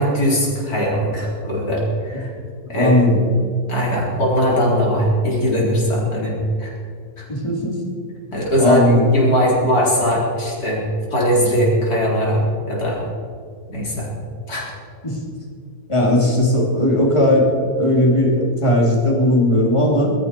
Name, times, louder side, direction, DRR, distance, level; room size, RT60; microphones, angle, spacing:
voice 1, 0.0-2.3 2.7-3.1 3.7-6.3 6.6-6.7 7.2-7.3 8.3-8.8 9.1-10.8 11.1-13.0 13.7-14.1 14.5-14.7, equal, 75° left, -4 dB, 4.6 m, -20 dB
voice 2, 2.7-3.3 7.3-7.8 8.6-9.1 15.0-15.2 15.9-20.1, left 1 dB, 20° left, -3 dB, 3.1 m, -17 dB
21.5 x 13.5 x 4.5 m, 2.2 s
omnidirectional pair, 1.6 m